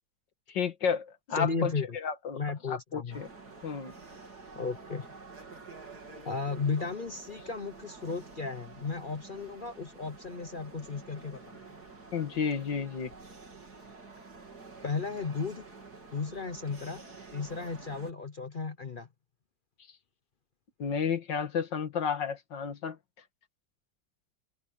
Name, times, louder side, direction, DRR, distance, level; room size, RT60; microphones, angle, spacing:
voice 1, 0.5-2.4 2.7-3.3 3.6-3.9 12.1-13.1 20.8-23.0, left 6 dB, 85° left, 2.4 m, -32 dB
voice 2, 1.3-2.0 2.4-3.2 4.6-5.1 6.2-11.6 14.8-15.6 16.1-17.0 17.3-19.1, left 4 dB, 45° left, 0.7 m, -34 dB
sound 1, 3.1-18.1, right 3 dB, 60° right, 4.1 m, -49 dB
open air
omnidirectional pair, 1.9 m